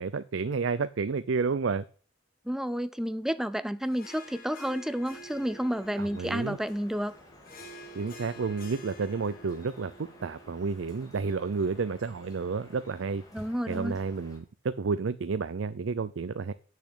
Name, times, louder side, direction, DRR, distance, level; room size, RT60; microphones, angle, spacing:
voice 1, 0.0-1.9 6.0-6.6 7.9-9.9 10.2-13.2 13.7-16.5, right 4 dB, 75° right, 0.5 m, -31 dB
voice 2, 2.5-7.1 13.3-14.0, equal, ahead, 0.4 m, -31 dB
Harp, 3.8-12.5, right 1 dB, 45° left, 1.9 m, -50 dB
Drip, 5.0-14.4, left 1 dB, 20° left, 2.8 m, -54 dB
sound 1, 7.5-8.6 8.9-14.0, right 1 dB, 35° right, 2.1 m, -57 dB
8.4 x 6.7 x 7.9 m
head